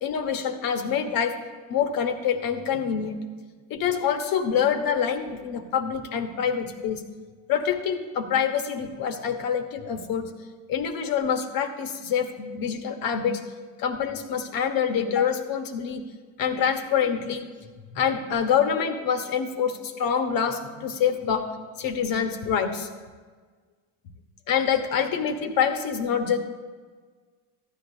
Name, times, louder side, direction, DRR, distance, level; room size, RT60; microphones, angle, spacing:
voice 1, 0.0-1.3 1.7-3.2 3.7-7.0 7.5-10.3 10.7-13.4 13.8-16.0 16.4-17.5 17.9-21.5 21.8-22.9 24.5-26.4, left 7 dB, 55° left, 6 dB, 1.3 m, -26 dB
14.5 x 10.5 x 2.8 m, 1.5 s
hypercardioid pair, 80°, 42 cm